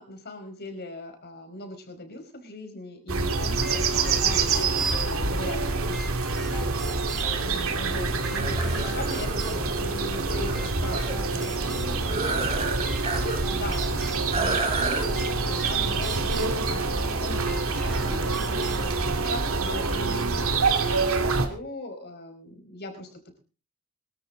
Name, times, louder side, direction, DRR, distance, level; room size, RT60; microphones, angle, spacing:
voice 1, 0.0-7.1 7.4-18.7 19.0-23.4, left 2 dB, 50° left, 5 dB, 5.0 m, -40 dB
sound 1, 3.1-21.5, right 3 dB, 65° right, 2.6 m, -26 dB
sound 2, 3.6-19.7, equal, ahead, 2.6 m, -42 dB
sound 3, 8.4-11.2 12.0-13.4 13.7-13.8 14.3-15.1, right 3 dB, 30° right, 3.7 m, -31 dB
23.0 x 13.0 x 3.9 m, 0.36 s
head